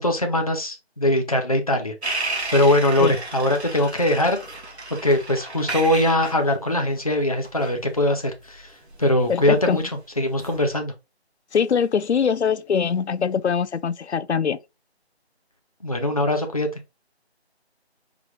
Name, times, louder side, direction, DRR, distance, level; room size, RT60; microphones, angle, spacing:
voice 1, 0.0-2.2 2.5-4.4 4.9-8.7 9.0-9.8 10.2-10.9 15.8-16.7, left 1 dB, 35° left, 0.7 m, -21 dB
sound 1, 2.0-9.8 10.3-10.7, right 2 dB, 75° right, 1.7 m, -33 dB
voice 2, 9.3-9.8 11.5-14.6, left 6 dB, 80° left, 0.6 m, -22 dB
4.8 x 3.1 x 3.6 m
figure-of-eight pair, 180°, 33 cm